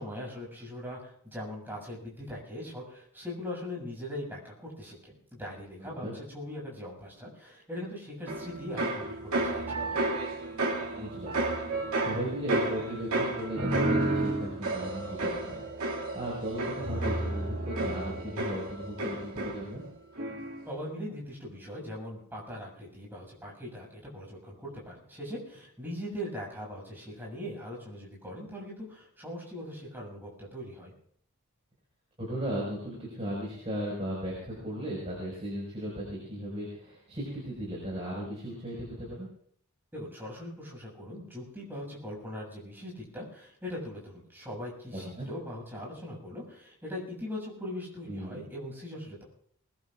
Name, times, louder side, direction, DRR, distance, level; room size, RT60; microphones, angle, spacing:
voice 1, 0.0-10.0 20.7-30.9 39.9-49.2, left 1 dB, 10° right, -4 dB, 7.0 m, -40 dB
voice 2, 5.8-6.1 10.9-19.8 32.2-39.3 44.9-45.3 48.1-48.4, equal, 30° right, -5 dB, 5.4 m, -37 dB
sound 1, 8.3-19.9 20.2-20.7, right 2 dB, 85° right, 2.3 m, -31 dB
22.5 x 20.5 x 2.5 m, 0.64 s
head